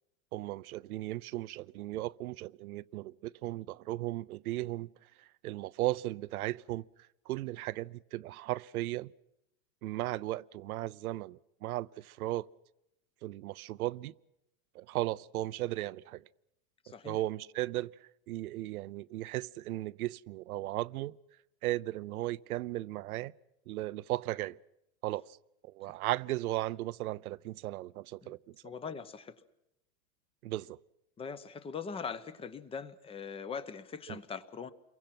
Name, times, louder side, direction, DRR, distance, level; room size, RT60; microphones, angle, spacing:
voice 1, 0.3-6.9 7.3-9.1 9.8-12.5 13.2-14.1 14.7-16.2 17.0-21.2 21.6-23.3 23.7-24.6 25.0-25.4 25.6-28.7 30.4-30.8 34.1-34.2, right 16 dB, 85° right, 0.8 m, -36 dB
voice 2, 16.8-17.2 28.2-28.3 28.6-29.4 31.2-34.7, left 6 dB, 15° left, 0.8 m, -41 dB
29.0 x 23.5 x 5.9 m
supercardioid pair, 155°, 43 cm